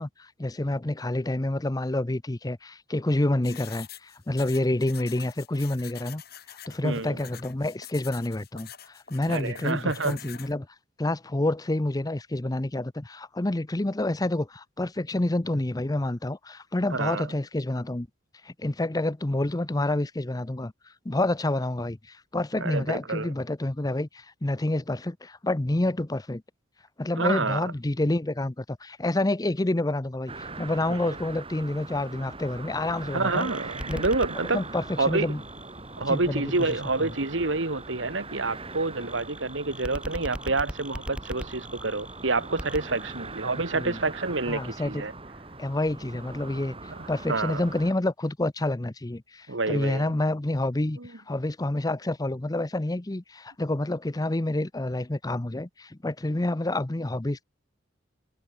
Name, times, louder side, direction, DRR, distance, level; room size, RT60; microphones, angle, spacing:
voice 1, 0.0-6.2 6.5-10.7 11.0-18.1 18.4-26.4 27.0-33.5 33.9-34.0 34.5-35.4 36.1-37.1 43.7-44.0 44.5-45.1 45.6-46.7 47.1-57.4, left 1 dB, 20° left, 0.7 m, -28 dB
sound 1, 3.4-10.5, left 10 dB, 55° left, 7.8 m, -45 dB
voice 2, 6.8-7.2 9.3-10.2 16.9-17.3 22.6-23.3 27.2-27.7 30.9-31.1 33.1-34.6 35.0-35.3 36.0-45.1 47.3-47.6 49.5-50.1 51.0-51.1, right 3 dB, 75° right, 1.9 m, -28 dB
sound 2, 30.3-47.9, right 3 dB, 30° right, 4.4 m, -41 dB
sound 3, 32.8-44.1, equal, 5° right, 3.0 m, -42 dB
head